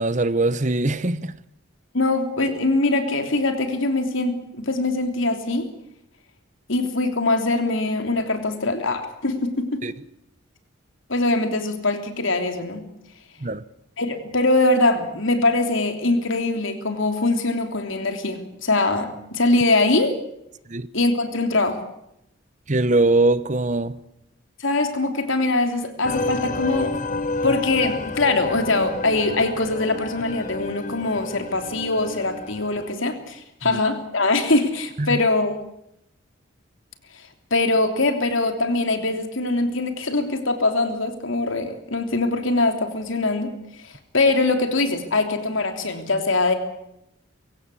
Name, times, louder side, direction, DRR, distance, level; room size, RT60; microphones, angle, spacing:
voice 1, 0.0-1.3 9.8-9.9 13.4-13.6 20.7-20.9 22.7-24.0 33.7-33.8 35.0-35.2, right 2 dB, 35° right, 0.9 m, -21 dB
voice 2, 1.9-5.7 6.7-9.8 11.1-12.9 14.0-20.2 20.9-21.8 24.6-26.9 27.4-35.6 37.1-43.5 43.8-46.5, left 2 dB, 70° left, 3.3 m, -22 dB
sound 1, 26.0-32.9, left 2 dB, 40° left, 1.2 m, -30 dB
24.0 x 16.5 x 8.4 m
head